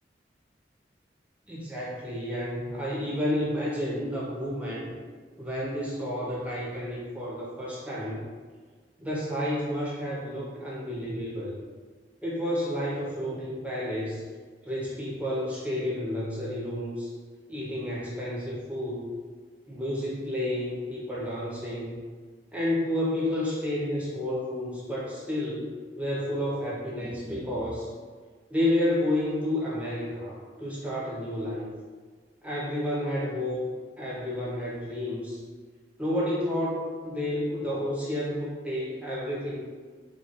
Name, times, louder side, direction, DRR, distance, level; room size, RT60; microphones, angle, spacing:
voice 1, 1.5-4.9 5.4-8.2 9.0-11.6 12.2-14.2 14.6-17.1 17.5-19.1 19.7-22.0 22.5-27.9 28.5-31.7 32.4-33.7 34.0-35.4 36.0-39.7, left 1 dB, 10° right, -6 dB, 0.4 m, -30 dB
2.9 x 2.7 x 2.8 m, 1.5 s
head